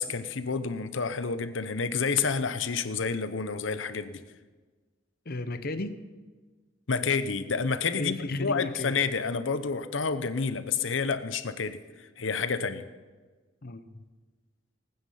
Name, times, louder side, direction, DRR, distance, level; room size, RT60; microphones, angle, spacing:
voice 1, 0.0-4.2 6.9-12.9, left 5 dB, 90° left, 12 dB, 0.9 m, -29 dB
voice 2, 5.2-6.0 7.9-9.0 13.6-14.0, left 2 dB, 55° left, 10 dB, 0.9 m, -35 dB
19.5 x 9.6 x 5.6 m, 1.4 s
head